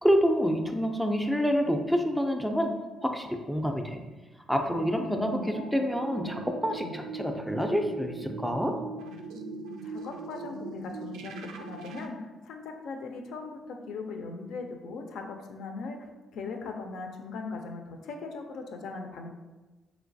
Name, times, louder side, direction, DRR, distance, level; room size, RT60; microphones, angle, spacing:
voice 1, 0.0-2.7 3.0-4.0 4.5-8.7, equal, 5° right, 4 dB, 0.4 m, -27 dB
sound 1, 4.7-12.1, right 3 dB, 90° right, 0.3 m, -40 dB
voice 2, 9.3-16.0 16.3-19.3, left 4 dB, 80° left, 4 dB, 0.4 m, -39 dB
3.1 x 3.0 x 2.6 m, 1.2 s
cardioid pair, 90°, 0 cm